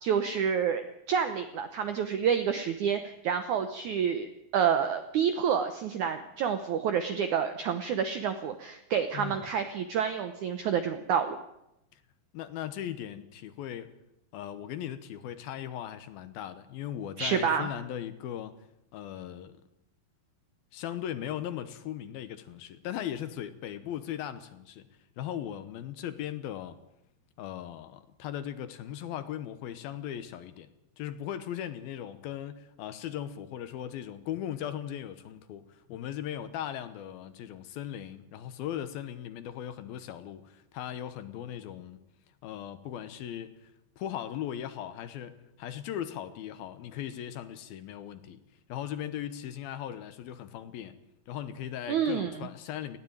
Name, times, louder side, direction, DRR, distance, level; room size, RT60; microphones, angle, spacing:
voice 1, 0.0-4.3 4.5-11.4 17.2-17.7 51.9-52.3, right 7 dB, 80° right, 1.7 m, -28 dB
voice 2, 9.1-9.5 11.9-12.0 12.3-13.9 14.3-18.6 18.9-19.5 20.7-24.9 25.2-26.8 27.4-30.7 31.0-42.0 42.4-43.7 44.0-48.4 48.7-51.0 51.3-53.0, left 10 dB, 70° left, 2.6 m, -38 dB
19.5 x 16.0 x 8.9 m
omnidirectional pair, 4.9 m